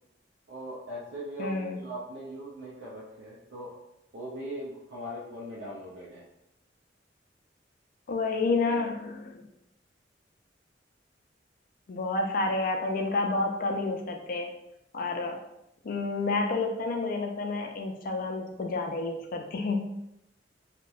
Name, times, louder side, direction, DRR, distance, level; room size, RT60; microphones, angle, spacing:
voice 1, 0.5-3.8 4.1-6.3, equal, 80° right, -7 dB, 0.5 m, -40 dB
voice 2, 1.4-1.8 8.1-9.4 11.9-14.5 14.9-15.4 15.8-19.9, left 3 dB, 50° left, 3 dB, 0.4 m, -29 dB
2.8 x 2.1 x 2.3 m, 0.84 s
head